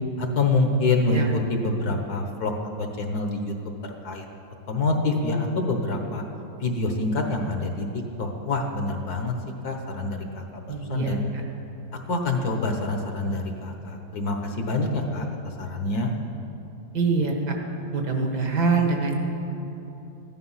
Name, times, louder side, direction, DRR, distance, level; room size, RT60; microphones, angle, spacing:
voice 1, 0.2-2.5 2.8-3.5 3.8-4.3 4.7-6.2 6.6-9.3 9.6-11.2 12.1-16.1, left 2 dB, 60° left, 3 dB, 1.6 m, -26 dB
voice 2, 10.7-11.4 16.9-17.6 17.9-19.1, right 4 dB, 60° right, 2 dB, 2.0 m, -24 dB
14.5 x 11.0 x 5.7 m, 3.0 s
omnidirectional pair, 2.0 m